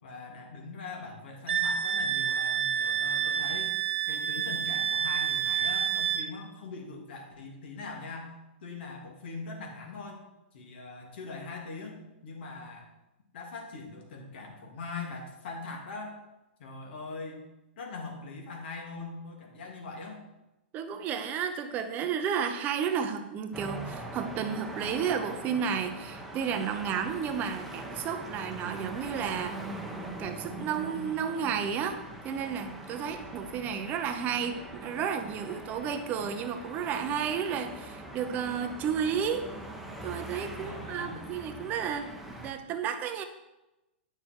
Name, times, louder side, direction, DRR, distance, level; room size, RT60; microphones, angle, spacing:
voice 1, 0.0-3.7 4.1-8.3 8.6-10.2 10.5-12.0 12.2-12.9 13.3-16.2 16.6-17.4 17.8-20.2 40.4-41.2, left 3 dB, 65° left, 1 dB, 2.8 m, -41 dB
Wind instrument woodwind instrument, 1.5-6.3, right 8 dB, 90° right, 0.8 m, -29 dB
voice 2, 20.7-29.6 30.2-39.5 40.0-42.1 42.4-43.2, right 7 dB, 30° right, 8 dB, 0.7 m, -32 dB
sound 1, 23.5-42.5, right 1 dB, ahead, 1.1 m, -42 dB
10.0 x 6.4 x 4.6 m, 0.97 s
hypercardioid pair, 140°, 6 cm